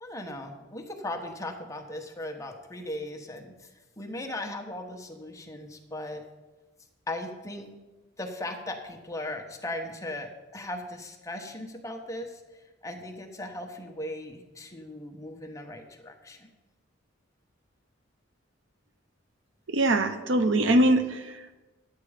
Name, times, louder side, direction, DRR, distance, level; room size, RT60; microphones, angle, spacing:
voice 1, 0.0-6.2 7.1-7.7 8.2-16.5, left 1 dB, 15° left, 3 dB, 1.0 m, -38 dB
voice 2, 19.7-21.5, right 1 dB, 65° right, 9 dB, 0.8 m, -23 dB
11.0 x 8.4 x 5.0 m, 1.2 s
head